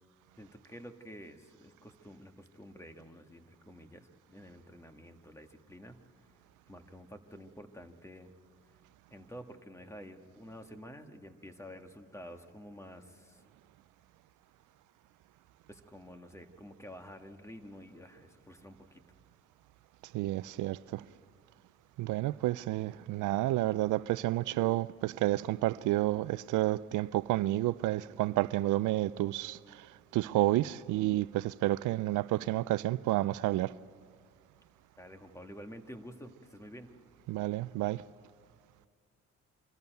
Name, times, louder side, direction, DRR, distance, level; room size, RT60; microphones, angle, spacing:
voice 1, 0.4-6.0 6.7-8.3 9.1-13.4 15.7-19.0 35.0-37.0, equal, 10° left, 1.7 m, -50 dB
voice 2, 20.1-21.0 22.0-29.9 30.1-33.7 37.3-38.0, right 16 dB, 85° right, 0.5 m, -30 dB
25.0 x 14.0 x 9.2 m
cardioid pair, 90°, 30 cm